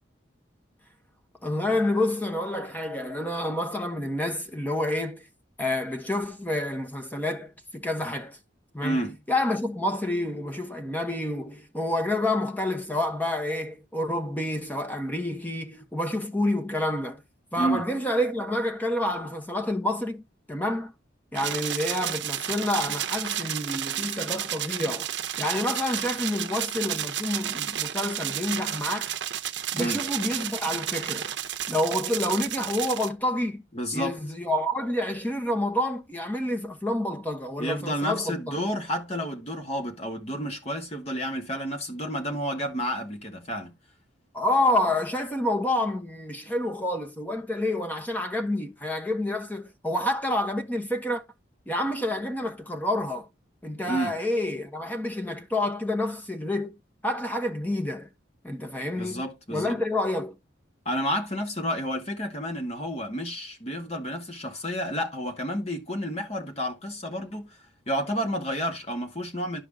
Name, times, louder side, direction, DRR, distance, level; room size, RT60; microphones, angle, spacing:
voice 1, 1.4-5.3 5.6-8.4 8.7-9.0 9.3-17.2 17.5-20.2 20.5-20.9 21.3-25.1 25.4-29.1 29.7-31.3 31.7-33.6 33.9-38.5 44.3-51.2 51.7-53.3 53.6-56.7 57.0-58.1 58.4-59.2 59.5-60.3, left 1 dB, 10° left, 1.1 m, -28 dB
voice 2, 8.8-9.2 17.5-17.8 29.8-30.0 33.7-34.2 37.6-43.7 53.9-54.2 58.9-59.8 60.9-69.6, equal, 35° left, 2.1 m, -30 dB
sound 1, 21.4-33.1, right 10 dB, 65° right, 0.8 m, -32 dB
11.5 x 4.9 x 3.6 m
head